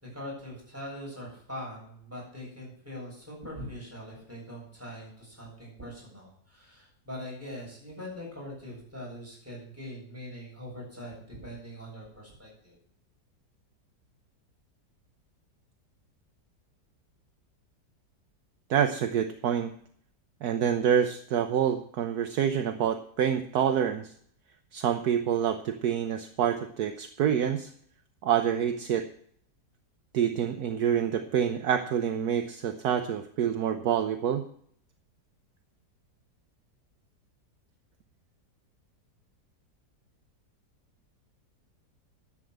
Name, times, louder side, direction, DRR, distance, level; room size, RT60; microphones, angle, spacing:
voice 1, 0.1-12.7, equal, 10° right, -4 dB, 7.4 m, -42 dB
voice 2, 18.7-19.7 20.4-24.1 24.7-27.7 28.2-29.1 30.1-34.4, right 9 dB, 65° right, 7 dB, 1.3 m, -27 dB
11.0 x 7.7 x 7.9 m, 0.64 s
omnidirectional pair, 1.8 m